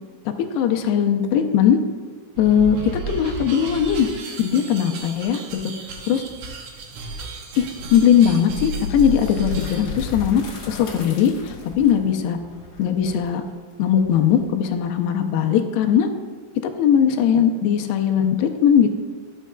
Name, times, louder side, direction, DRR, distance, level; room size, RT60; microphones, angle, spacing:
voice 1, 0.3-1.8 2.4-2.8 3.1-4.1 4.4-5.7 6.1-6.2 7.6-12.4 12.8-13.4 13.8-16.1 16.6-18.9, left 8 dB, 85° left, 4 dB, 2.6 m, -19 dB
sound 1, 2.3-9.9, right 2 dB, 85° right, 1.8 m, -33 dB
sound 2, 9.0-14.8, left 5 dB, 55° left, 1.9 m, -36 dB
13.5 x 7.3 x 2.3 m, 1.5 s
omnidirectional pair, 5.0 m